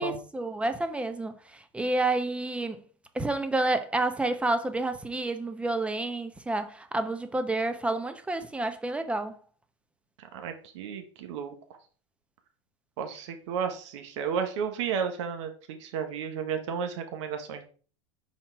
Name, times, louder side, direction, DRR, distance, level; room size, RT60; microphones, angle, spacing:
voice 1, 0.0-2.8 3.1-9.4, right 2 dB, 5° right, 0.8 m, -29 dB
voice 2, 10.2-11.5 13.0-17.7, right 7 dB, 70° right, 1.3 m, -33 dB
5.8 x 4.4 x 4.6 m
hypercardioid pair, 105°, 16 cm